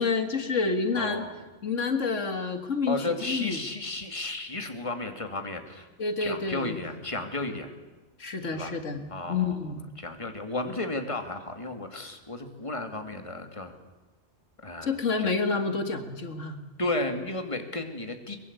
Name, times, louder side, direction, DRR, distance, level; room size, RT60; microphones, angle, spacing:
voice 1, 0.0-1.3 1.6-3.6 6.0-6.8 8.2-9.8 14.8-16.6, left 4 dB, 85° left, 7 dB, 2.3 m, -29 dB
voice 2, 1.0-1.3 2.9-5.9 6.2-7.7 8.4-8.8 9.1-9.6 10.0-13.7 14.6-15.0 16.8-18.4, left 2 dB, 25° left, 6 dB, 2.6 m, -33 dB
23.5 x 22.0 x 8.3 m, 1.2 s
omnidirectional pair, 1.2 m